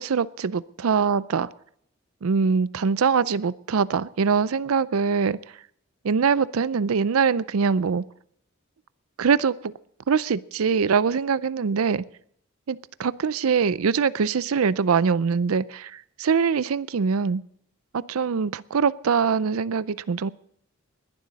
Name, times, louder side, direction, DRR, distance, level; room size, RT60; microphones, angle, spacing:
voice 1, 0.0-1.5 2.2-5.4 6.0-8.0 9.2-9.7 10.1-12.0 12.7-17.4 17.9-20.3, right 6 dB, 90° right, 17 dB, 0.5 m, -23 dB
20.5 x 11.5 x 4.1 m, 0.68 s
head